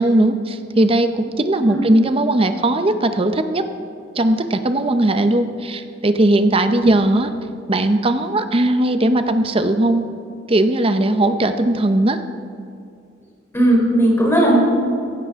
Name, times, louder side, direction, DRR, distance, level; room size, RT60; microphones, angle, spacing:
voice 1, 0.0-3.6 4.2-7.3 7.7-10.1 10.5-12.2, right 1 dB, 30° right, 9 dB, 0.7 m, -18 dB
voice 2, 13.5-14.6, right 1 dB, 15° left, -3 dB, 3.6 m, -16 dB
16.5 x 16.0 x 3.6 m, 2.4 s
head